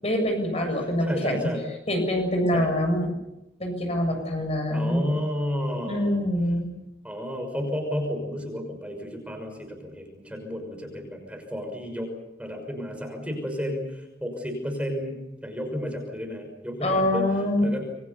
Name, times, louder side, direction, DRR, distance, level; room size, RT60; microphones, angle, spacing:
voice 1, 0.0-1.5 1.9-3.1 3.6-5.1 5.9-6.7 16.8-17.6, left 1 dB, 35° left, 4 dB, 7.5 m, -25 dB
voice 2, 1.0-1.7 2.5-2.7 4.7-6.2 7.0-12.1 12.4-17.3 17.6-17.8, equal, 5° right, 3 dB, 6.0 m, -32 dB
27.5 x 24.0 x 7.0 m, 0.91 s
head